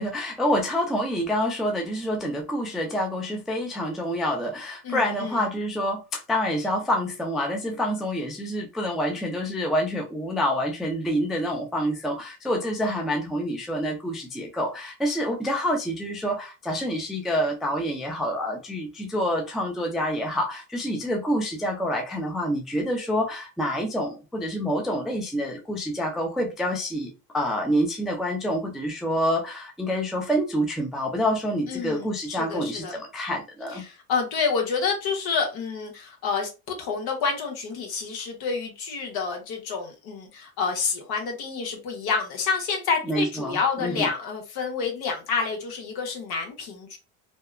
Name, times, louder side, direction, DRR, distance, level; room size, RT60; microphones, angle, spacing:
voice 1, 0.0-33.8 43.1-44.1, equal, ahead, 0.3 m, -27 dB
voice 2, 4.8-5.4 31.7-33.0 33.7-47.0, left 5 dB, 60° left, 1.1 m, -28 dB
2.7 x 2.1 x 2.3 m
supercardioid pair, 100°, 42 cm